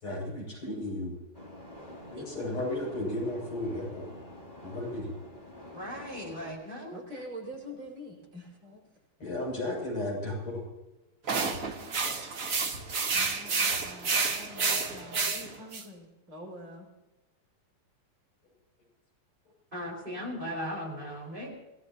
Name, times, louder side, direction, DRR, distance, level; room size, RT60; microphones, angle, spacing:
voice 1, 0.0-1.2 2.1-4.1 4.6-5.1 9.2-10.6, left 1 dB, 90° left, -2 dB, 8.4 m, -34 dB
sound 1, 1.3-6.5, left 1 dB, 20° left, 3.6 m, -47 dB
voice 2, 2.2-2.6 6.9-9.0 11.5-12.0 13.1-16.9, equal, 65° right, -3 dB, 6.2 m, -46 dB
voice 3, 5.7-7.0 19.7-21.5, equal, 20° right, -2 dB, 5.7 m, -37 dB
sound 2, 11.3-15.8, right 4 dB, 40° right, 1.8 m, -30 dB
27.0 x 18.0 x 3.0 m, 1.1 s
omnidirectional pair, 2.4 m